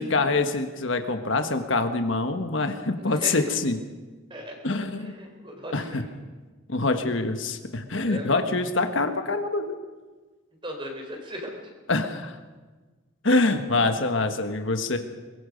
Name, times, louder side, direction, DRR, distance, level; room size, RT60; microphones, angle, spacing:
voice 1, 0.0-3.8 4.6-5.1 5.7-6.0 6.7-9.8 11.9-12.4 13.2-15.0, left 3 dB, 65° left, 7 dB, 1.4 m, -25 dB
voice 2, 3.0-3.6 4.3-6.1 8.1-8.3 10.6-11.6, equal, 25° right, 2 dB, 4.1 m, -38 dB
23.0 x 21.5 x 5.3 m, 1.3 s
head